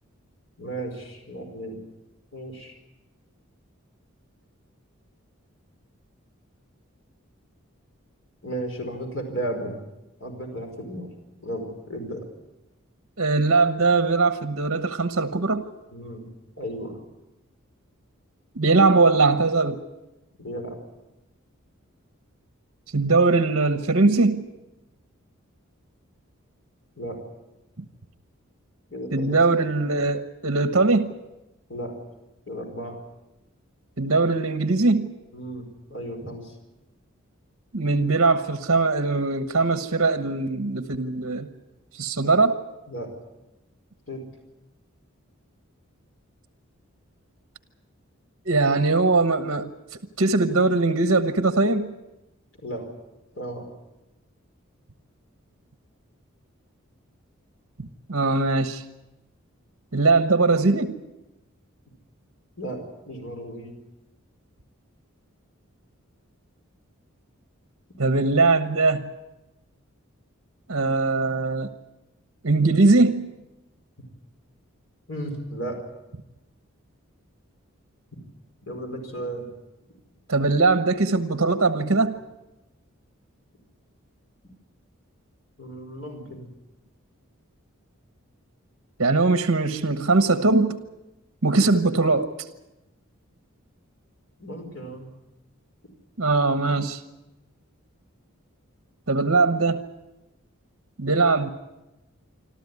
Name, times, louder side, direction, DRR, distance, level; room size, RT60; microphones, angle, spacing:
voice 1, 0.6-1.8 2.3-2.8 8.4-9.8 10.2-11.1 11.4-12.3 15.9-16.2 16.6-17.0 20.4-20.8 27.0-27.2 28.9-29.4 31.7-31.9 32.5-33.0 35.3-36.5 42.9-43.1 44.1-44.2 52.6-52.9 53.3-53.7 62.6-62.8 63.1-63.7 75.1-75.8 78.6-79.5 85.6-86.5 94.4-95.1, right 1 dB, 60° left, 3 dB, 4.9 m, -34 dB
voice 2, 13.2-15.6 18.5-19.8 22.9-24.4 29.1-31.1 34.0-35.1 37.7-41.5 42.0-42.6 48.4-49.7 50.2-51.9 57.8-58.8 59.9-60.9 68.0-69.1 70.7-71.7 72.4-73.2 80.3-82.1 89.0-90.8 91.4-92.3 96.2-97.0 99.1-99.8 101.0-101.5, right 3 dB, 65° right, 9 dB, 1.2 m, -21 dB
27.5 x 13.0 x 9.7 m, 0.97 s
head